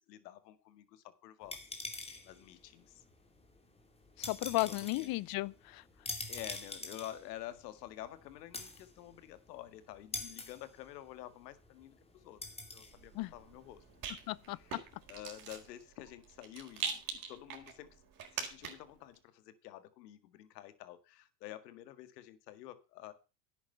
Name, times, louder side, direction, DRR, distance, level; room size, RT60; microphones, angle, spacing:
voice 1, 0.0-1.6 2.2-3.0 4.7-5.2 6.3-12.4 12.7-13.8 14.5-18.0 18.3-23.1, left 13 dB, 80° left, 1.9 m, -49 dB
sound 1, 1.4-15.7, left 2 dB, 10° left, 2.7 m, -47 dB
voice 2, 4.2-5.8 13.1-13.3 14.3-14.8, left 21 dB, 50° left, 0.7 m, -35 dB
Rattle, 12.9-19.0, right 6 dB, 45° right, 4.6 m, -44 dB
11.0 x 8.8 x 5.6 m
supercardioid pair, 105°, 48 cm